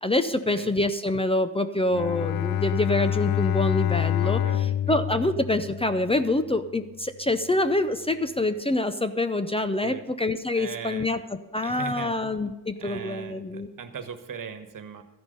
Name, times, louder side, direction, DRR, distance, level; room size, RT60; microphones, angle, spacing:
voice 1, 0.0-13.7, left 2 dB, 15° left, 10 dB, 0.6 m, -26 dB
Bowed string instrument, 1.9-6.3, left 11 dB, 85° left, 0.5 m, -27 dB
voice 2, 4.2-5.3 9.8-10.1 10.5-11.1 11.6-12.1 12.8-15.0, right 6 dB, 65° right, 8 dB, 1.4 m, -39 dB
13.5 x 10.5 x 5.4 m, 1.0 s
wide cardioid pair, 125°, 35 cm